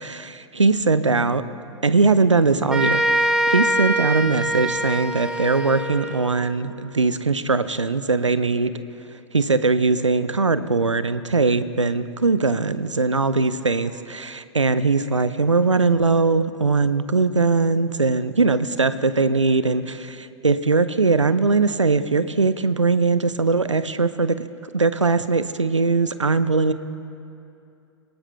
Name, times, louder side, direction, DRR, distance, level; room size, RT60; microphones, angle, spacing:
voice 1, 0.0-1.4 1.8-8.7 9.3-24.4 24.7-26.7, right 4 dB, 85° right, 13 dB, 0.7 m, -20 dB
sound 1, 2.7-6.4, right 1 dB, 5° right, 1.2 m, -23 dB
28.0 x 18.0 x 2.2 m, 2.7 s
figure-of-eight pair, 100°, 15 cm